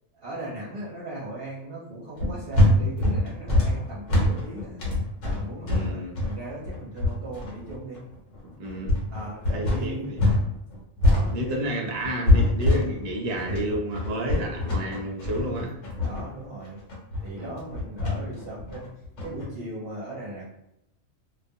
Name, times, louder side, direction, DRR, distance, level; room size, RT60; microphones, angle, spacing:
voice 1, 0.2-4.8 5.2-8.0 9.1-10.1 11.0-11.7 16.0-16.8 17.2-18.9 19.2-20.4, right 2 dB, 55° right, -7 dB, 0.8 m, -38 dB
sound 1, 2.2-10.4 10.7-19.5, left 1 dB, 70° left, 1.2 m, -24 dB
voice 2, 5.6-6.1 7.1-7.2 8.4-9.0 9.5-10.2 11.3-15.8 17.3-17.5, right 1 dB, 75° right, 0 dB, 0.3 m, -31 dB
2.4 x 2.2 x 2.6 m, 0.82 s
omnidirectional pair, 1.3 m